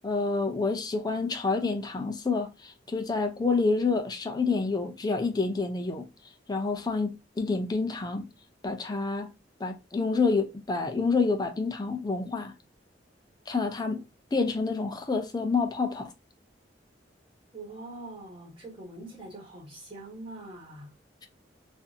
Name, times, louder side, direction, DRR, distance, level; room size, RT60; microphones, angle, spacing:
voice 1, 0.0-6.1 6.5-8.3 8.6-9.3 9.6-12.5 13.5-14.0 14.3-16.1, left 4 dB, 20° left, 0.4 m, -28 dB
voice 2, 17.5-20.9, right 2 dB, 25° right, 1.2 m, -43 dB
2.6 x 2.5 x 2.4 m
head